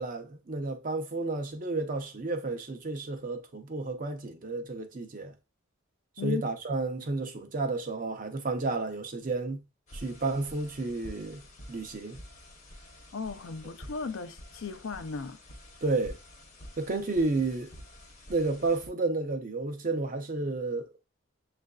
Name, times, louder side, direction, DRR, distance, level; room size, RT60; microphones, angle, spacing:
voice 1, 0.0-5.3 6.2-9.6 9.9-12.2 15.8-16.2 16.8-17.7 18.3-20.9, right 3 dB, 40° right, 0.6 m, -31 dB
sound 1, 9.9-18.9, left 1 dB, 35° left, 0.8 m, -49 dB
voice 2, 13.1-15.4, left 5 dB, 65° left, 0.5 m, -36 dB
7.2 x 2.5 x 2.2 m
head